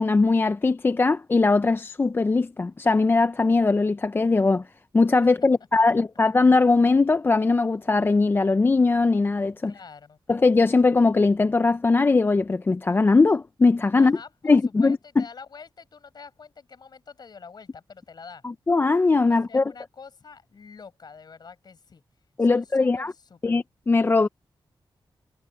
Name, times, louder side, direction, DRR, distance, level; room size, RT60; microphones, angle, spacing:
voice 1, 0.0-4.6 4.9-9.7 10.3-14.2 14.4-15.3 18.4-19.6 22.4-23.1 23.4-24.3, left 3 dB, 25° left, 0.4 m, -20 dB
voice 2, 9.7-10.2 13.9-18.4 19.3-22.0 22.4-23.6, left 5 dB, 55° left, 6.0 m, -46 dB
wide cardioid pair, 150°, 9 cm